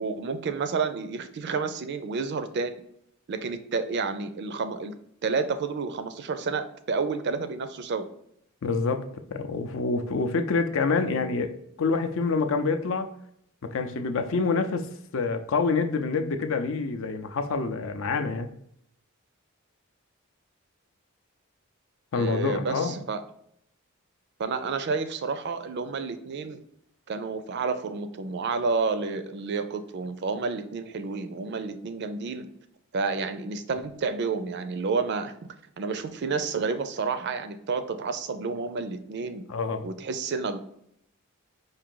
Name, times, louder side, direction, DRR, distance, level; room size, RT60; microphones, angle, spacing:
voice 1, 0.0-2.8 3.3-4.9 5.2-8.1 22.1-23.2 24.4-26.6 27.1-32.5 32.9-35.3 35.8-39.4 39.8-40.6, right 4 dB, 55° right, 10 dB, 0.4 m, -30 dB
voice 2, 8.6-11.5 11.8-13.1 13.6-18.5 22.1-23.0 39.5-39.9, left 4 dB, 65° left, 7 dB, 0.5 m, -27 dB
4.8 x 2.6 x 3.8 m, 0.71 s
head